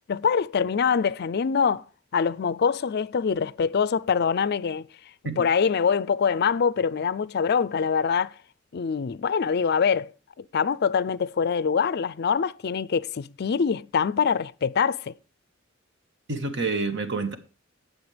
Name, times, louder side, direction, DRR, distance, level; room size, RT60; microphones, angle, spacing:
voice 1, 0.1-1.8 2.1-4.9 5.4-8.4 8.7-10.1 10.4-15.1, left 6 dB, 55° left, 0.4 m, -24 dB
voice 2, 16.3-17.3, right 3 dB, 60° right, 1.6 m, -28 dB
18.0 x 6.6 x 3.3 m
head